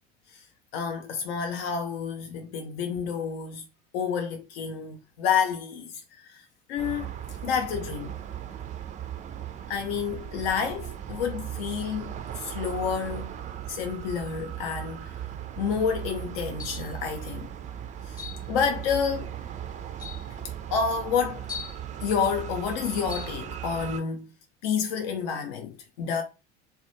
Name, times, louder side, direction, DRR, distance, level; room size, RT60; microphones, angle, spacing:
voice 1, 0.7-3.6 3.9-7.1 7.4-8.1 9.7-13.3 13.7-15.2 15.6-17.5 18.0-18.2 18.5-19.3 20.7-21.5 22.0-24.3 24.6-26.2, left 6 dB, 60° left, 0.5 m, -29 dB
sound 1, 6.8-24.0, right 10 dB, 20° right, 0.4 m, -38 dB
sound 2, 16.6-17.0 18.2-18.5 19.4-19.5 20.0-20.3 21.5-21.8 23.1-23.4, left 6 dB, 10° left, 0.7 m, -39 dB
2.3 x 2.1 x 2.9 m
figure-of-eight pair, 65°, 35 cm